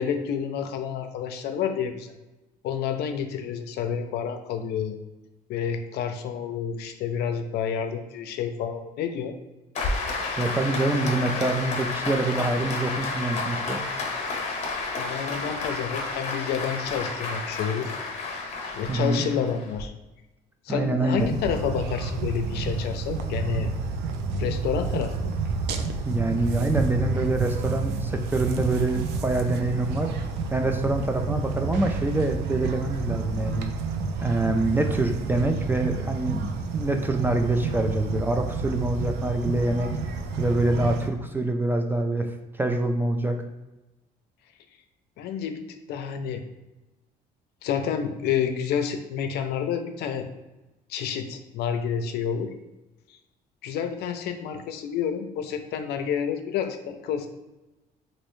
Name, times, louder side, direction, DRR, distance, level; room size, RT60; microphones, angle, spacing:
voice 1, 0.0-2.1 2.6-4.9 5.5-9.3 14.9-17.9 18.2-18.3 18.7-19.9 20.7-23.7 24.3-25.3 45.2-45.6 45.9-46.4 47.6-50.3 50.9-52.5 53.6-57.3, left 7 dB, 75° left, 6 dB, 0.5 m, -29 dB
Applause, 9.7-19.8, left 3 dB, 45° left, 0.9 m, -31 dB
voice 2, 10.4-13.8 18.9-19.2 20.7-21.3 26.0-30.1 30.5-33.7 34.2-39.9 40.4-42.3 42.5-43.4, right 2 dB, 10° right, 5 dB, 0.3 m, -25 dB
sound 1, 21.2-41.1, right 4 dB, 85° right, 0.4 m, -30 dB
3.1 x 2.6 x 3.0 m, 1.0 s
cardioid pair, 110°, 17 cm